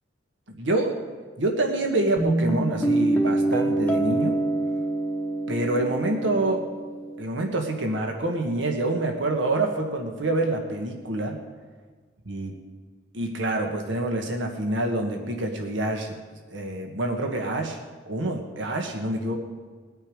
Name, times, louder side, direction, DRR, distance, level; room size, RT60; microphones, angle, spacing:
voice 1, 0.5-1.0 1.4-4.4 5.5-6.7 7.2-11.4 12.3-12.6 13.1-17.8 18.1-19.4, right 2 dB, 75° right, 3 dB, 1.5 m, -27 dB
Guitar, 2.2-7.2, right 2 dB, 10° left, 1.0 m, -25 dB
21.0 x 8.6 x 4.9 m, 1.5 s
head